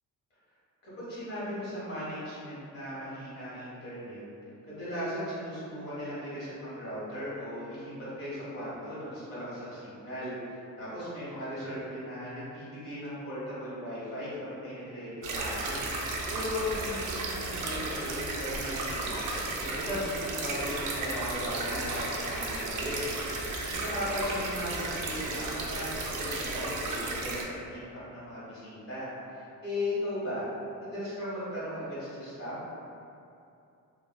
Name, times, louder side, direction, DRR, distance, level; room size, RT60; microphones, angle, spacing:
voice 1, 0.8-4.2 4.6-23.3 23.6-27.8 28.1-30.5 30.8-32.5, left 1 dB, 40° left, -11 dB, 1.3 m, -37 dB
sound 1, 15.2-27.4, right 2 dB, 60° right, 0.5 m, -34 dB
3.3 x 2.1 x 2.2 m, 2.6 s
wide cardioid pair, 155°, 35 cm